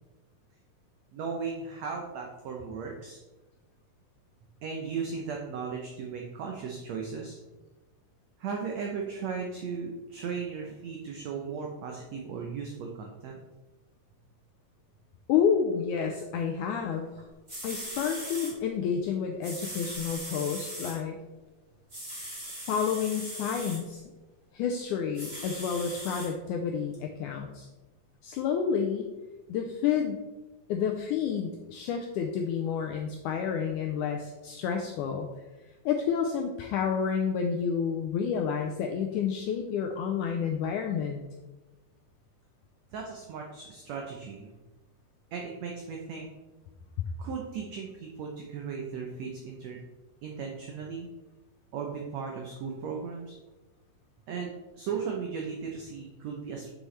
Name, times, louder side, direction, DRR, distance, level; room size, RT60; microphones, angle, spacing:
voice 1, 1.1-3.2 4.6-7.4 8.4-13.4 42.9-44.5 45.3-46.3 47.2-49.8 50.2-51.1 51.7-53.4 54.3-56.7, right 5 dB, 85° right, 1 dB, 1.5 m, -36 dB
voice 2, 15.3-17.1 17.6-21.2 22.7-24.0 24.5-27.7 28.2-29.1 29.5-30.2 30.7-35.3 35.8-41.2, left 7 dB, 85° left, 3 dB, 1.7 m, -29 dB
sound 1, 17.2-17.3 17.5-18.5 19.4-21.0 21.9-23.8 25.1-26.3 26.9-27.0, equal, 15° right, 2.4 m, -39 dB
7.7 x 6.4 x 3.2 m, 1.1 s
omnidirectional pair, 4.1 m